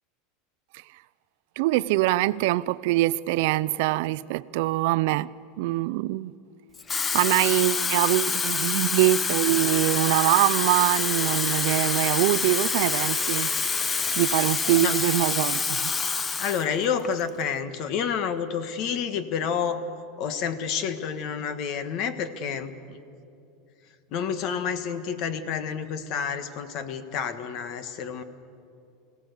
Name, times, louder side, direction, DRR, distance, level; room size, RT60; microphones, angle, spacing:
voice 1, 1.6-5.3 5.6-6.3 7.1-13.5 14.2-15.9, right 17 dB, 65° right, 0.4 m, -23 dB
Water tap faucet / Fill (with liquid), 6.7-16.7 17.0-17.3, left 5 dB, 15° left, 0.7 m, -27 dB
voice 2, 16.4-19.8 20.2-23.0 24.1-28.2, left 7 dB, 45° left, 1.4 m, -29 dB
25.5 x 17.0 x 8.2 m
supercardioid pair, 155°, 0 cm